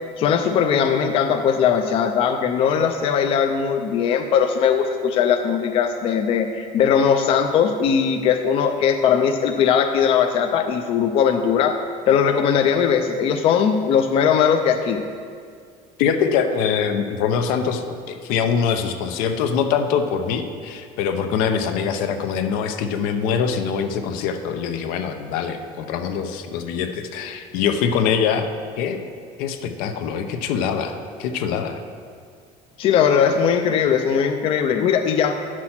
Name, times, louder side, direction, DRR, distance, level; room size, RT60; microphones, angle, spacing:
voice 1, 0.2-11.8 12.1-15.0 32.8-35.3, left 7 dB, 40° left, 6 dB, 0.5 m, -19 dB
voice 2, 16.0-28.5 28.8-29.0 29.4-31.8, left 7 dB, 80° left, 7 dB, 0.8 m, -23 dB
9.8 x 6.1 x 5.9 m, 2.2 s
cardioid pair, 175°, 15 cm